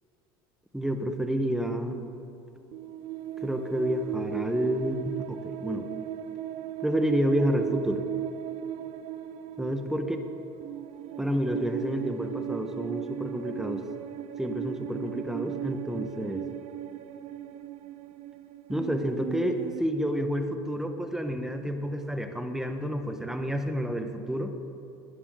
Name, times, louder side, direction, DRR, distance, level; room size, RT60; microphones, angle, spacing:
voice 1, 0.7-2.0 3.4-5.9 6.8-8.0 9.6-10.2 11.2-13.8 14.4-16.4 18.7-24.5, equal, 5° right, 6 dB, 1.5 m, -29 dB
sound 1, 2.7-19.8, right 12 dB, 60° right, 0.7 m, -37 dB
21.0 x 11.0 x 4.1 m, 3.0 s
supercardioid pair, 90°, 12 cm